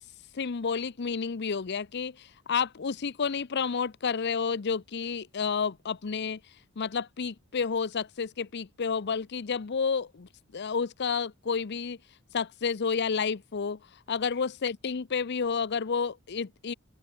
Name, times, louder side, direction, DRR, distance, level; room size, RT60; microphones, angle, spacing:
voice 1, 0.3-6.4 6.8-12.0 12.3-13.8 14.1-16.7, left 5 dB, 55° left, 0.6 m, -30 dB
open air
head